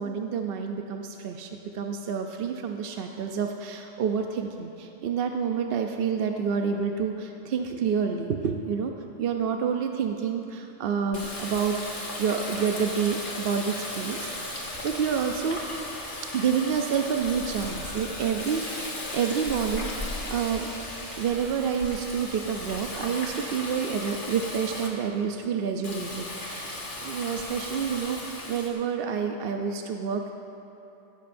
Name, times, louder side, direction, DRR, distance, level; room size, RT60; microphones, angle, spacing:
voice 1, 0.0-8.9 9.2-11.7 12.2-14.6 14.8-15.6 16.3-20.7 21.2-30.3, right 6 dB, 60° right, 4 dB, 0.7 m, -28 dB
Water tap faucet, 11.1-24.9 25.8-28.7, left 1 dB, 40° left, 1.7 m, -36 dB
16.5 x 13.0 x 2.6 m, 2.9 s
omnidirectional pair, 1.3 m